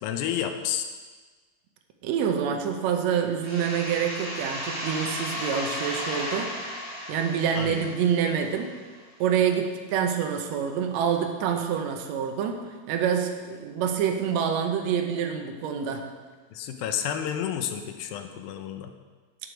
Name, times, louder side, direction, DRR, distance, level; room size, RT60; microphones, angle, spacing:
voice 1, 0.0-0.9 7.6-7.9 16.5-18.9, left 9 dB, 85° left, 7 dB, 2.5 m, -30 dB
voice 2, 2.0-6.5 7.1-8.7 9.2-12.5 12.9-16.0, right 8 dB, 80° right, 4 dB, 1.6 m, -26 dB
sound 1, 3.4-8.9, left 1 dB, 25° left, 2.2 m, -35 dB
8.1 x 7.8 x 5.1 m, 1.4 s
omnidirectional pair, 4.2 m